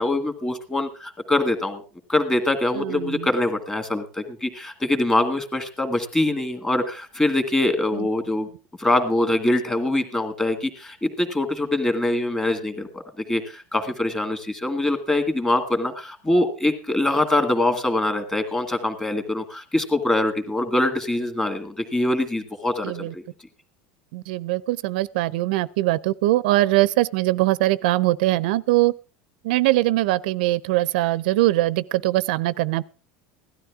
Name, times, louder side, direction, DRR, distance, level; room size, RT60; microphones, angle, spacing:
voice 1, 0.0-1.8 2.1-8.5 8.8-13.0 13.3-23.2, left 1 dB, 10° left, 2.1 m, -23 dB
voice 2, 2.8-3.3 7.9-8.1 22.8-23.1 24.1-28.9 29.4-32.8, right 17 dB, 75° right, 0.6 m, -22 dB
17.0 x 12.5 x 3.6 m
supercardioid pair, 150°, 5 cm